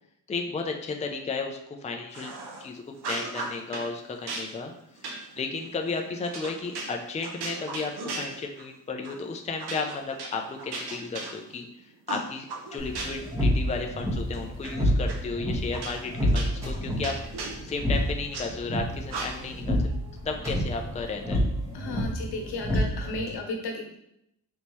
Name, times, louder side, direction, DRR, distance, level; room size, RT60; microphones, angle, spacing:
voice 1, 0.3-2.3 2.6-4.7 5.4-7.9 8.2-11.7 12.1-17.1 17.6-19.8 20.2-21.4, left 4 dB, 20° left, 3 dB, 0.4 m, -33 dB
sound 1, 2.1-2.6 3.0-3.9 4.3-8.7 9.0-9.2 9.6-11.7 12.1-13.4 13.7-14.7 15.1-15.2 15.7-18.5 19.1-19.6, right 3 dB, 75° right, 0.9 m, -37 dB
sound 2, 12.8-23.3, equal, 10° right, 1.3 m, -29 dB
voice 2, 21.7-24.0, left 2 dB, 80° left, 2 dB, 0.9 m, -34 dB
4.1 x 3.5 x 3.0 m, 0.78 s
cardioid pair, 100°, 39 cm